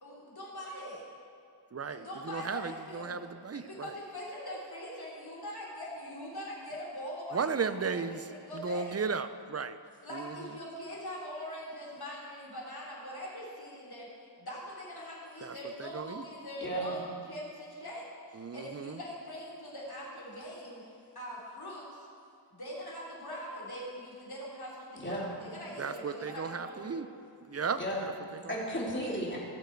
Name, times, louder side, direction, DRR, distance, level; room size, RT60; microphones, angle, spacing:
voice 1, 0.0-1.0 1.9-3.2 3.5-9.0 10.0-14.1 14.4-17.0 17.3-20.8 21.1-22.1 22.5-27.0, equal, 55° left, -4 dB, 3.3 m, -42 dB
voice 2, 1.7-3.9 7.3-8.2 8.5-9.8 10.1-10.6 15.4-16.2 18.4-19.0 25.8-27.1 27.4-28.5, right 5 dB, 35° right, 12 dB, 0.5 m, -35 dB
voice 3, 16.6-17.0 25.0-25.2 27.8-28.0 28.5-29.4, right 1 dB, 25° left, -5 dB, 3.0 m, -33 dB
16.5 x 7.3 x 4.6 m, 2.4 s
wide cardioid pair, 50°, 43 cm